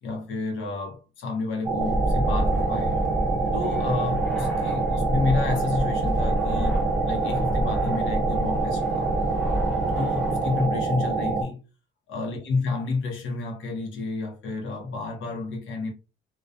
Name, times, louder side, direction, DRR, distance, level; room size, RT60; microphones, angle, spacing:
voice 1, 0.0-3.0 3.5-9.1 10.0-11.6 12.1-15.9, left 3 dB, 80° left, 0.8 m, -30 dB
sound 1, 1.6-11.4, right 3 dB, 25° right, 0.7 m, -26 dB
Fixed-wing aircraft airplane, 1.8-10.7, equal, 5° left, 1.1 m, -29 dB
2.3 x 2.2 x 2.5 m
cardioid pair, 90°, 20 cm